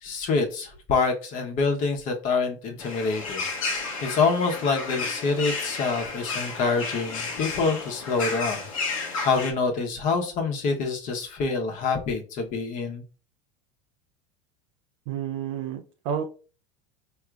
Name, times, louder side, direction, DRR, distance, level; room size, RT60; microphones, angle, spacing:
voice 1, 0.0-13.0, left 4 dB, 50° left, 3 dB, 1.1 m, -26 dB
sound 1, 2.8-9.5, left 4 dB, 90° left, 1.0 m, -32 dB
voice 2, 15.1-16.2, right 8 dB, 70° right, 5 dB, 0.5 m, -30 dB
4.6 x 2.8 x 2.4 m, 0.37 s
hypercardioid pair, 95°, 17 cm